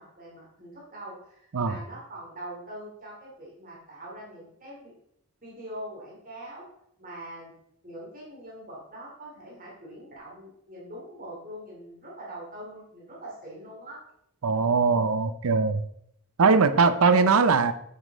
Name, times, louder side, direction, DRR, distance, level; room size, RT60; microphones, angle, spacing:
voice 1, 0.0-4.9 5.4-6.6 7.0-7.5 7.8-14.0, right 1 dB, 40° right, -4 dB, 2.6 m, -43 dB
voice 2, 14.4-15.8 16.4-17.7, right 4 dB, 75° right, 12 dB, 0.5 m, -21 dB
7.3 x 6.5 x 4.0 m, 0.72 s
head